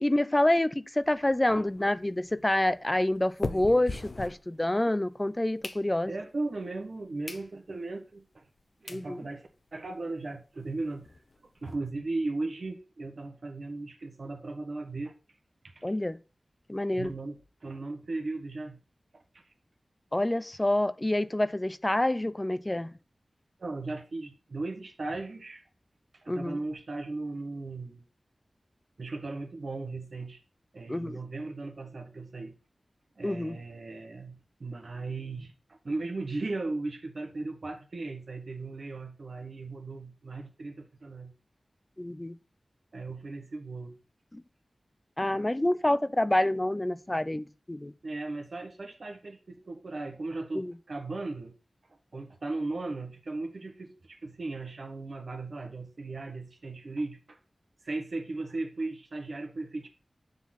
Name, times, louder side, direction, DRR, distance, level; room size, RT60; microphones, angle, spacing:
voice 1, 0.0-6.1 8.9-9.2 15.8-16.2 16.7-17.1 20.1-22.9 26.3-26.6 30.9-31.2 33.2-33.6 42.0-42.4 44.3-44.4 45.2-47.9 50.5-50.7, left 1 dB, 20° left, 0.4 m, -27 dB
sound 1, 1.0-5.0 5.4-6.3 6.8-6.9 7.2-7.5 7.9-8.0 8.6-8.7 8.9-9.1 9.5-9.6 9.8-9.9 10.2-10.3 10.6-11.7, left 3 dB, 60° left, 0.8 m, -41 dB
voice 2, 6.0-8.4 8.8-11.2 11.6-15.1 15.6-15.8 17.0-18.8 19.1-19.4 23.6-25.6 26.2-28.0 29.0-30.4 30.7-32.5 33.2-41.3 42.9-44.0 48.0-51.5 52.1-57.4 57.8-59.9, right 3 dB, 75° right, 1.4 m, -37 dB
7.1 x 3.9 x 5.8 m
wide cardioid pair, 55°, 0 cm